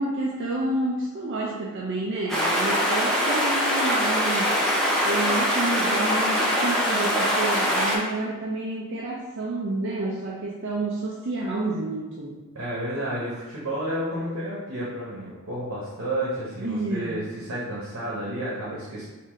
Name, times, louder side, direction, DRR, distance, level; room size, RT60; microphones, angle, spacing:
voice 1, 0.0-4.5 5.0-12.4 16.6-17.3, right 2 dB, 60° right, -3 dB, 0.5 m, -29 dB
sound 1, 2.3-8.0, equal, ahead, 0.6 m, -23 dB
voice 2, 12.5-19.1, right 1 dB, 80° right, -6 dB, 1.0 m, -31 dB
3.6 x 2.7 x 3.6 m, 1.2 s
head